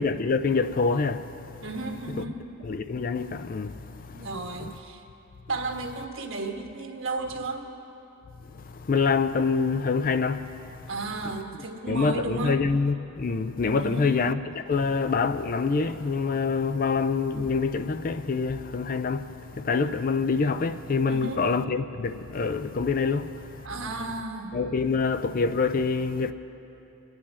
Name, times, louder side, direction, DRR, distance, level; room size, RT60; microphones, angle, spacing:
voice 1, 0.0-1.6 2.6-4.3 4.6-4.7 8.5-10.9 11.2-11.3 11.9-23.7 24.5-26.3, left 4 dB, 40° left, 0.4 m, -26 dB
voice 2, 1.6-2.4 4.1-5.0 5.5-7.7 10.9-12.7 13.8-14.2 21.1-21.5 23.6-24.6, right 2 dB, 60° right, 1.4 m, -33 dB
25.5 x 9.6 x 4.3 m
head